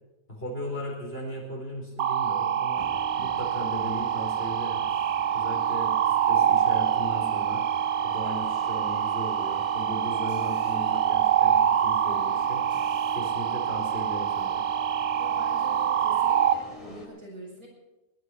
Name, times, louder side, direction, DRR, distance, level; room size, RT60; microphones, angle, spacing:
voice 1, 0.3-2.9 3.2-4.9 5.3-7.6 8.0-12.7 13.1-14.7, left 1 dB, 40° left, -1 dB, 4.8 m, -37 dB
sound 1, 2.0-16.5, right 9 dB, 55° right, 1.0 m, -25 dB
sound 2, 2.7-17.1, left 2 dB, 20° left, 2.8 m, -45 dB
voice 2, 15.2-17.7, right 1 dB, 80° right, -3 dB, 7.2 m, -44 dB
19.5 x 10.0 x 5.9 m, 1.0 s
omnidirectional pair, 1.5 m